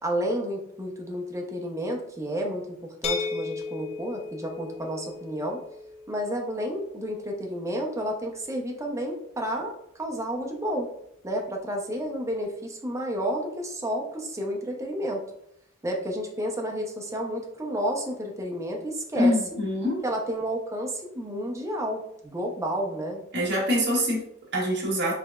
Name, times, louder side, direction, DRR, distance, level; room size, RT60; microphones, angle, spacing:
voice 1, 0.0-2.8 3.0-5.6 6.1-9.7 10.0-10.9 11.2-15.2 15.8-19.3 20.0-23.2, equal, 15° right, 0 dB, 0.6 m, -31 dB
sound 1, 3.0-8.8, left 5 dB, 30° left, 0.3 m, -37 dB
voice 2, 19.1-20.0 23.3-25.1, equal, 55° right, -3 dB, 1.3 m, -25 dB
4.8 x 3.3 x 2.3 m, 0.76 s
head